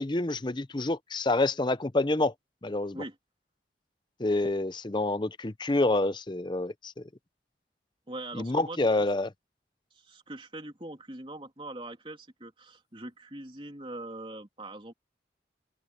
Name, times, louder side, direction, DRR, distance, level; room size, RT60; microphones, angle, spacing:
voice 1, 0.0-2.3 2.6-3.0 4.2-7.0 8.3-9.3, left 2 dB, 25° left, 0.7 m, -27 dB
voice 2, 8.1-9.0 9.9-14.9, right 2 dB, 30° right, 3.3 m, -42 dB
open air
head